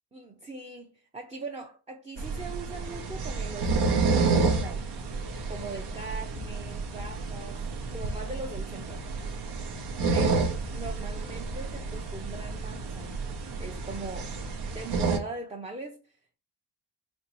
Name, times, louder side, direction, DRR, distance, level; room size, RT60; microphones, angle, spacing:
voice 1, 0.1-4.9 5.5-7.6 7.9-9.1 10.1-13.1 13.6-16.4, right 3 dB, 15° right, 0.5 m, -40 dB
sound 1, 2.2-15.2, right 4 dB, 80° right, 0.8 m, -30 dB
4.3 x 3.0 x 2.9 m
cardioid pair, 100°, 40 cm